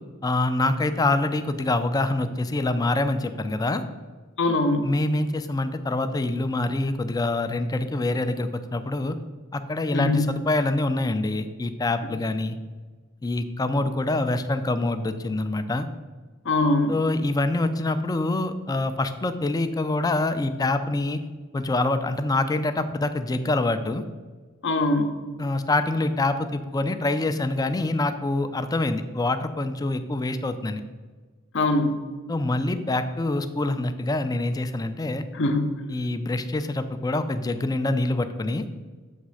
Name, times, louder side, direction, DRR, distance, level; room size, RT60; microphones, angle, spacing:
voice 1, 0.2-3.8 4.8-9.2 9.5-12.6 13.2-15.9 16.9-21.2 21.5-24.0 25.4-30.8 32.3-35.2 35.9-38.7, left 2 dB, 20° left, 9 dB, 0.4 m, -25 dB
voice 2, 4.4-4.9 9.9-10.3 16.5-17.0 24.6-25.2 31.5-32.0 35.3-35.6, left 2 dB, 60° left, 6 dB, 0.7 m, -22 dB
7.2 x 3.2 x 6.2 m, 1.4 s
head